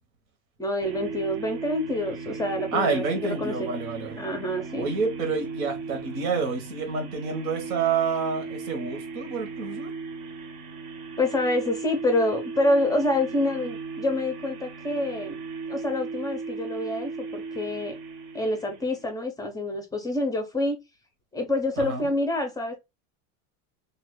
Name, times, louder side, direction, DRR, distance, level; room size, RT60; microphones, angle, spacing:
voice 1, 0.6-3.7 4.2-4.9 11.2-15.4 15.7-18.0 18.3-20.8 21.3-22.8, left 1 dB, 10° left, 0.4 m, -27 dB
sound 1, 0.8-19.1, right 4 dB, 55° right, 0.8 m, -37 dB
voice 2, 2.7-4.2 4.8-9.9 21.8-22.1, right 5 dB, 85° right, 1.4 m, -28 dB
2.8 x 2.4 x 3.5 m
supercardioid pair, 140°, 41 cm